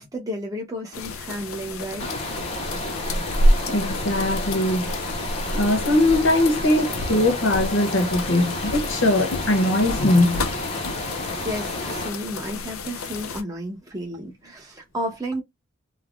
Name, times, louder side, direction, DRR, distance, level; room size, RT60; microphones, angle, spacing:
voice 1, 0.0-2.2 6.8-7.1 11.4-15.4, equal, 15° right, 0.9 m, -32 dB
sound 1, 0.9-13.4, left 1 dB, 85° left, 0.5 m, -28 dB
sound 2, 2.0-12.1, left 1 dB, 30° left, 0.6 m, -31 dB
voice 2, 3.7-4.9 5.5-10.4, left 1 dB, 65° left, 0.9 m, -21 dB
3.2 x 2.1 x 2.5 m
head